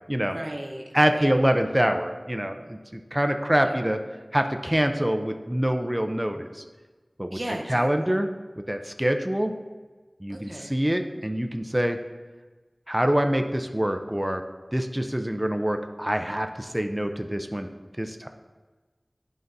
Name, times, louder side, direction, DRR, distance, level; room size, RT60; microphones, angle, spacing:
voice 1, 0.3-1.3 3.6-3.8 7.3-8.2 10.3-10.8, right 1 dB, 45° right, 1 dB, 0.8 m, -37 dB
voice 2, 0.9-4.0 4.3-6.5 7.2-7.4 7.7-8.3 8.7-9.5 10.2-12.0 12.9-14.4 14.7-17.7 18.0-18.3, equal, 15° right, 6 dB, 0.4 m, -25 dB
11.0 x 3.9 x 2.6 m, 1.3 s
wide cardioid pair, 45°, 0 cm